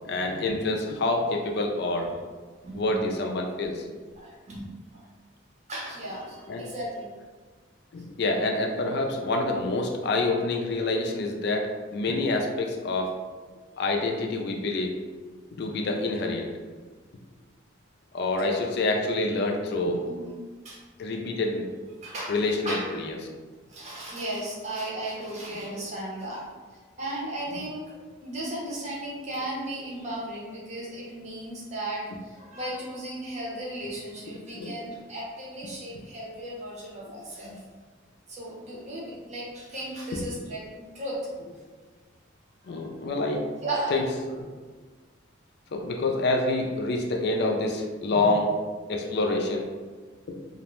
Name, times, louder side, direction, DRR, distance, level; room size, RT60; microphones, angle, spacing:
voice 1, 0.0-2.1 2.7-3.9 6.5-6.7 7.9-13.1 13.8-14.9 15.6-16.5 18.1-20.0 21.0-21.7 22.3-23.2 34.5-34.7 37.4-37.6 42.7-43.4 43.9-44.0 44.3-44.5 45.7-48.6 48.9-49.7, left 2 dB, 55° left, 2 dB, 0.3 m, -27 dB
voice 2, 2.6-3.1 4.2-4.6 4.9-5.1 5.7-7.1 18.4-18.6 20.1-20.4 20.6-20.8 22.0-22.3 22.6-23.0 23.7-26.5 27.0-27.8 28.2-37.6 38.3-41.3 42.6-42.9 43.6-44.0, right 1 dB, 35° right, -5 dB, 0.7 m, -35 dB
2.4 x 2.1 x 3.0 m, 1.4 s
head